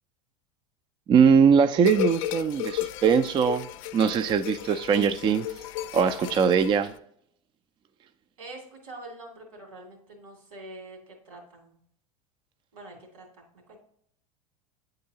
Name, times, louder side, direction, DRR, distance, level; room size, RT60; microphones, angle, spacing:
voice 1, 1.1-3.7 3.9-5.5 5.9-6.9, right 6 dB, 25° right, 0.4 m, -21 dB
sound 1, 1.8-7.0, left 12 dB, 60° left, 0.5 m, -34 dB
voice 2, 8.4-11.8 12.7-13.8, right 2 dB, 80° right, 2.6 m, -45 dB
9.3 x 3.9 x 2.8 m
hypercardioid pair, 85°, 18 cm